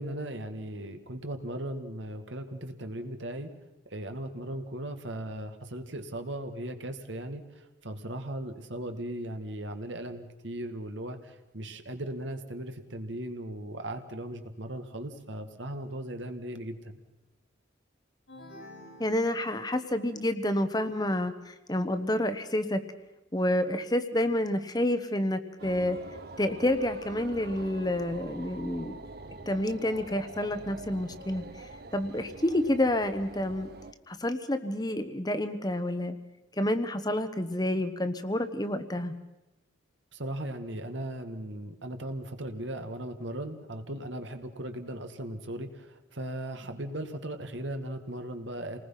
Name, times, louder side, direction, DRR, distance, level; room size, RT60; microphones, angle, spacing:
voice 1, 0.0-3.5 3.9-17.0 40.1-48.8, right 1 dB, 75° right, 7 dB, 2.0 m, -37 dB
sound 1, 18.3-20.1, left 1 dB, 90° left, 6.6 m, -50 dB
voice 2, 19.0-22.8 23.3-26.0 26.4-28.9 29.5-31.4 31.9-33.7 34.1-36.1 36.6-39.1, left 1 dB, 20° left, 9 dB, 1.1 m, -29 dB
sound 2, 25.6-33.9, right 3 dB, 55° right, 1.0 m, -45 dB
28.5 x 20.0 x 5.8 m, 1.0 s
head